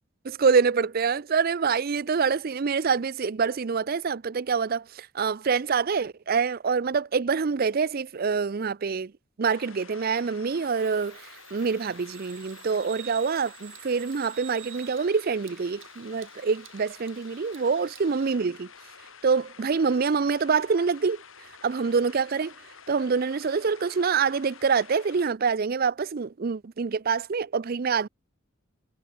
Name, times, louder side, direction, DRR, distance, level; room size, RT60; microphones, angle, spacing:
voice 1, 0.2-9.1 9.4-11.2 11.5-18.7 19.2-21.2 21.6-22.5 22.9-28.1, right 5 dB, 45° right, 0.5 m, -26 dB
sound 1, 9.4-25.3, left 6 dB, 75° left, 5.1 m, -50 dB
Bird vocalization bird call bird song, 10.8-18.4, right 15 dB, 65° right, 7.0 m, -49 dB
head